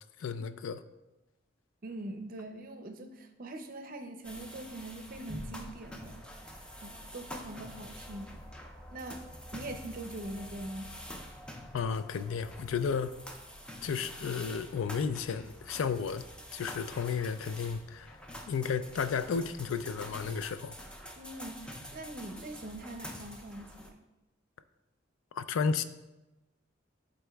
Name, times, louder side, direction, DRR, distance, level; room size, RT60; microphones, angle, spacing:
voice 1, 0.2-0.8 11.7-13.1 13.8-16.2 16.5-18.2 18.5-20.8 25.3-25.8, left 6 dB, 80° left, 12 dB, 0.3 m, -33 dB
voice 2, 1.8-6.3 6.8-8.4 8.9-9.2 9.5-10.9 21.1-24.0, right 1 dB, 45° right, 6 dB, 0.6 m, -43 dB
sound 1, 4.2-23.9, equal, 5° left, 0.5 m, -46 dB
11.0 x 4.0 x 2.3 m, 1.0 s
head